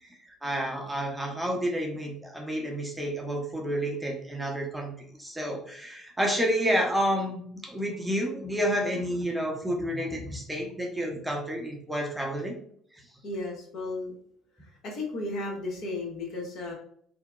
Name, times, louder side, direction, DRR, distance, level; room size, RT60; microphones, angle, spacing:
voice 1, 0.0-4.9 5.2-12.6, equal, 10° right, 1 dB, 0.7 m, -30 dB
voice 2, 13.2-14.1 14.6-16.7, left 2 dB, 60° left, -1 dB, 0.9 m, -34 dB
2.8 x 2.1 x 2.3 m, 0.63 s
hypercardioid pair, 65°, 0 cm